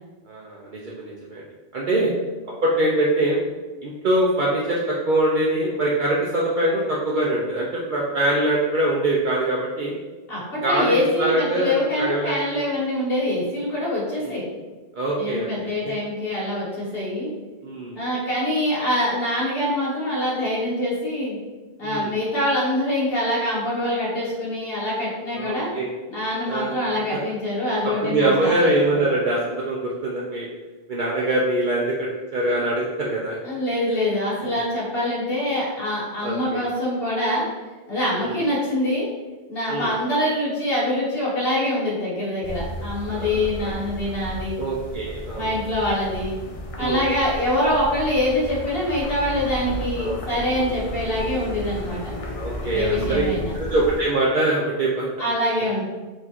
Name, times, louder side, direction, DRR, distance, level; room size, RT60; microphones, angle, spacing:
voice 1, 0.3-1.4 1.7-2.1 2.6-3.4 3.8-9.9 10.6-12.6 14.2-14.3 14.9-15.9 17.6-18.0 21.8-22.1 25.4-25.9 26.4-26.7 27.8-30.5 30.9-33.4 34.4-34.6 36.2-36.7 38.2-38.4 39.7-39.9 43.1-43.8 44.6-45.5 46.8-47.0 50.0-50.2 52.3-53.2 53.5-55.1, right 1 dB, 55° right, -4 dB, 0.7 m, -23 dB
voice 2, 10.3-14.4 15.2-17.3 17.9-21.4 21.8-25.7 26.1-29.1 33.4-37.4 37.9-39.1 39.5-44.6 45.3-46.4 46.8-52.1 52.6-53.5 55.2-55.8, left 1 dB, 70° left, -7 dB, 1.8 m, -24 dB
sound 1, 42.4-54.0, equal, 50° left, 0.4 m, -33 dB
4.5 x 2.6 x 4.3 m, 1.3 s
omnidirectional pair, 1.0 m